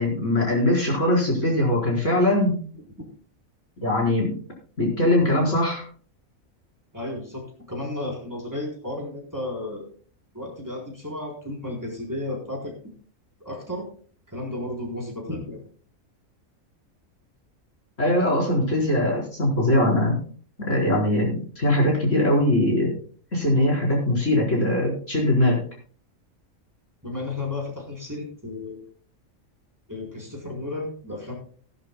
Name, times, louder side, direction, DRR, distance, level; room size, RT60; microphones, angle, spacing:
voice 1, 0.0-2.6 3.8-4.3 4.8-5.8 18.0-20.2 20.6-22.9 23.3-25.6, left 1 dB, 65° left, -2 dB, 5.0 m, -21 dB
voice 2, 6.9-9.9 10.3-12.7 13.4-13.9 14.3-15.7 27.0-28.8 29.9-31.3, left 2 dB, 15° right, -1 dB, 4.2 m, -33 dB
18.5 x 11.0 x 2.3 m, 0.44 s
omnidirectional pair, 1.4 m